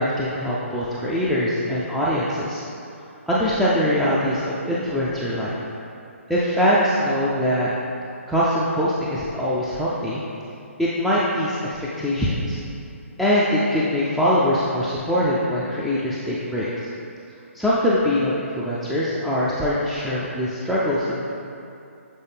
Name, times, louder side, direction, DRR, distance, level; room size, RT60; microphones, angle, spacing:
voice 1, 0.0-2.6 3.3-5.6 6.3-7.7 8.3-10.2 10.8-12.6 13.2-16.9 17.5-21.2, equal, ahead, -9 dB, 0.4 m, -22 dB
7.4 x 3.8 x 3.5 m, 2.6 s
figure-of-eight pair, 140°, 7 cm